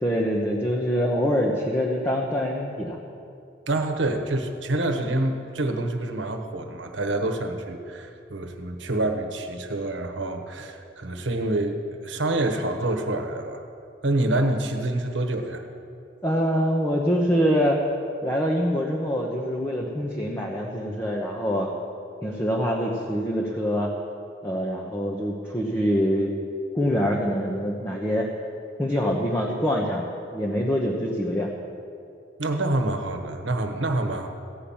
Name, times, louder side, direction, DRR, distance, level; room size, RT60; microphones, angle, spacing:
voice 1, 0.0-3.0 16.2-17.8 18.2-21.7 22.2-23.9 24.4-26.3 26.7-28.3 28.8-31.5, equal, 15° left, -2 dB, 0.9 m, -25 dB
voice 2, 3.7-13.6 14.0-15.6 32.4-34.3, right 2 dB, 75° right, 5 dB, 1.1 m, -27 dB
15.5 x 5.8 x 8.6 m, 2.5 s
head